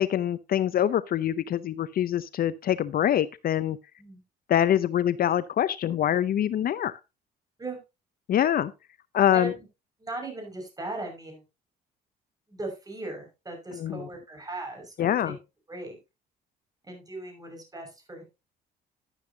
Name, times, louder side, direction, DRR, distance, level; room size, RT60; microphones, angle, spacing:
voice 1, 0.0-3.8 4.5-7.0 8.3-8.7 9.1-9.5 13.7-14.0 15.0-15.4, left 10 dB, 55° left, 0.6 m, -25 dB
voice 2, 9.3-9.7 10.0-11.4 12.5-15.3 15.7-16.0 16.8-18.2, right 2 dB, 20° right, 5.8 m, -38 dB
11.5 x 10.0 x 2.8 m
supercardioid pair, 80°, 18 cm